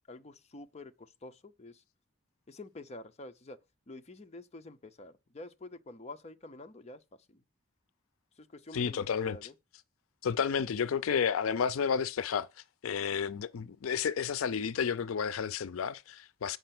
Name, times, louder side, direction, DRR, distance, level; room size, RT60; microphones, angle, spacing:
voice 1, 0.1-1.8 2.5-3.6 3.9-7.0 7.3-7.4 8.4-9.5, left 2 dB, 30° left, 0.6 m, -48 dB
voice 2, 8.7-9.4 10.2-12.5 12.8-16.6, left 7 dB, 80° left, 0.4 m, -31 dB
7.8 x 5.4 x 5.9 m
head